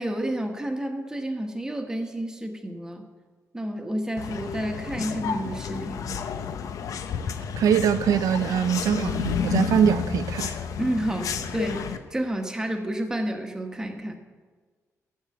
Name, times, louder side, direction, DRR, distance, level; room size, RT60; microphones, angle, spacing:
voice 1, 0.0-3.1 3.5-6.2 10.8-14.2, right 1 dB, 10° right, 1.2 m, -30 dB
sound 1, 4.2-12.0, left 7 dB, 75° left, 0.8 m, -31 dB
voice 2, 7.6-10.5, right 9 dB, 85° right, 0.4 m, -23 dB
14.5 x 6.6 x 7.7 m
wide cardioid pair, 160°, 6 cm